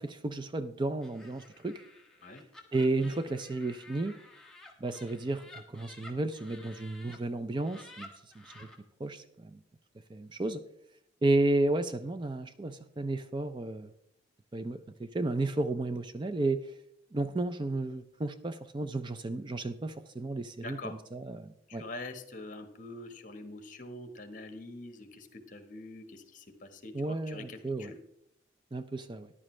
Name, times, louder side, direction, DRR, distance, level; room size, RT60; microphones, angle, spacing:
voice 1, 0.0-1.8 2.7-4.1 4.8-8.1 8.6-8.7 9.0-9.6 10.1-10.6 11.2-13.9 14.5-16.7 17.1-21.8 26.9-27.9 28.7-29.3, right 2 dB, 25° right, 11 dB, 0.4 m, -32 dB
Laughter, 1.0-7.2 7.5-8.8, left 2 dB, 5° left, 1.6 m, -53 dB
voice 2, 20.6-21.0 21.7-28.0, left 2 dB, 45° left, 8 dB, 1.4 m, -45 dB
14.0 x 11.0 x 3.2 m, 0.77 s
head